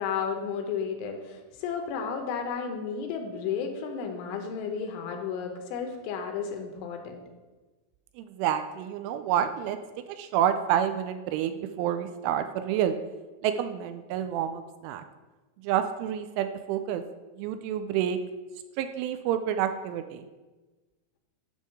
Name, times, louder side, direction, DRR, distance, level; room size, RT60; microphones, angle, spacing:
voice 1, 0.0-7.2, left 6 dB, 80° left, 4 dB, 3.1 m, -33 dB
voice 2, 8.2-9.8 10.1-13.0 13.4-15.0 15.6-17.0 17.4-18.2 18.8-20.3, right 10 dB, 85° right, 9 dB, 2.9 m, -28 dB
10.0 x 3.7 x 6.5 m, 1.2 s
omnidirectional pair, 5.7 m